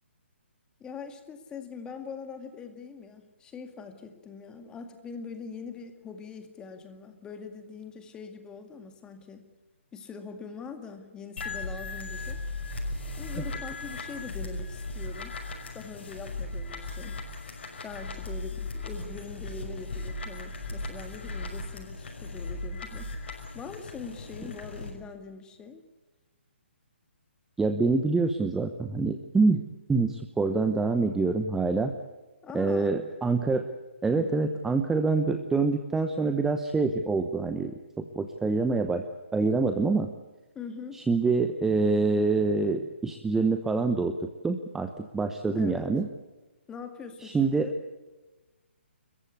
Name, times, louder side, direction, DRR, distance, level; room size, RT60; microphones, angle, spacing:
voice 1, 0.8-9.5 9.9-12.4 13.2-15.4 15.7-17.2 17.8-23.1 23.5-25.8 32.4-33.0 34.1-34.5 40.5-41.0 45.5-45.9 46.7-47.8, left 5 dB, 10° left, 7 dB, 2.1 m, -43 dB
sound 1, 11.4-24.9, left 2 dB, 60° left, 5.7 m, -37 dB
voice 2, 27.6-29.6 29.9-31.9 32.5-33.7 34.0-39.0 39.3-40.1 40.9-46.1 47.2-47.7, right 3 dB, 5° right, 7 dB, 0.9 m, -26 dB
30.0 x 15.0 x 8.4 m, 1.2 s
figure-of-eight pair, 140°, 7 cm